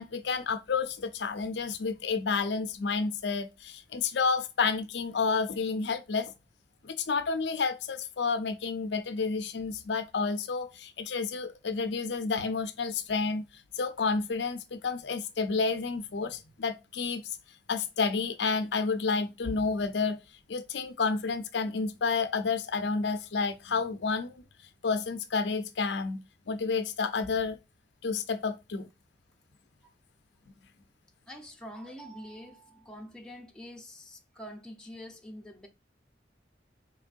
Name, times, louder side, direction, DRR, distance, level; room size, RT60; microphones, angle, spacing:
voice 1, 0.0-6.3 6.8-13.4 13.8-17.2 17.7-20.2 20.5-24.4 24.8-27.6 28.0-28.9, left 4 dB, 70° left, 0.5 m, -30 dB
voice 2, 31.3-35.7, equal, 5° left, 0.7 m, -45 dB
4.4 x 3.1 x 2.5 m
head